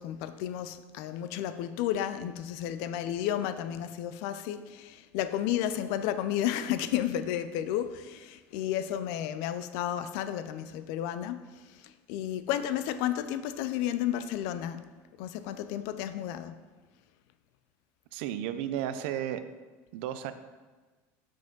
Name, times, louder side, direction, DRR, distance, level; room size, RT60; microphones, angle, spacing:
voice 1, 0.0-14.9 15.2-16.6, left 11 dB, 60° left, 11 dB, 0.4 m, -32 dB
voice 2, 18.1-19.4 19.9-20.3, right 11 dB, 70° right, 11 dB, 0.4 m, -33 dB
5.8 x 5.0 x 3.8 m, 1.3 s
cardioid pair, 180°, 7 cm